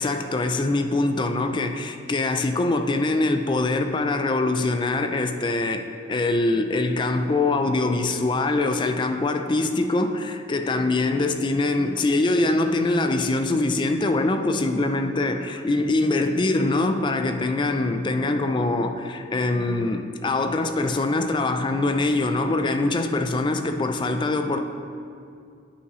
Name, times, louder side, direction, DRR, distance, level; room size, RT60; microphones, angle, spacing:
voice 1, 0.0-24.6, left 2 dB, 25° left, 0.4 m, -23 dB
9.9 x 5.4 x 3.1 m
head